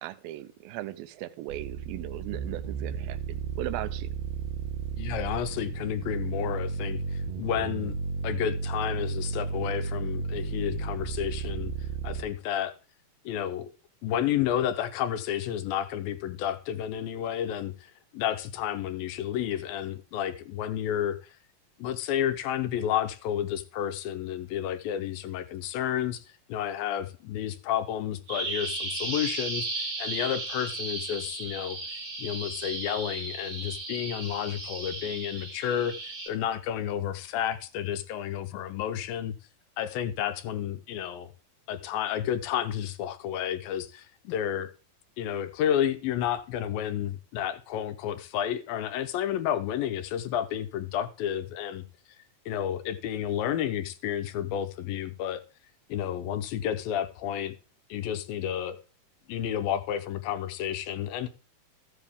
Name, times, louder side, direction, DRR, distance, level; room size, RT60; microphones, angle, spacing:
voice 1, 0.0-4.1, right 14 dB, 90° right, 2.5 m, -38 dB
sound 1, 1.5-12.3, right 5 dB, 65° right, 1.7 m, -33 dB
voice 2, 5.0-7.9 8.2-11.7 12.0-12.7 13.3-13.7 14.0-17.7 18.1-21.2 21.8-26.2 26.5-29.7 30.0-31.8 32.2-39.3 39.8-41.3 41.7-44.7 45.2-51.8 52.5-55.4 55.9-57.5 57.9-58.8 59.3-61.3, left 10 dB, 85° left, 2.5 m, -31 dB
Bird vocalization bird call bird song, 28.3-36.3, right 2 dB, 25° right, 1.7 m, -35 dB
14.5 x 7.5 x 3.5 m
omnidirectional pair, 4.1 m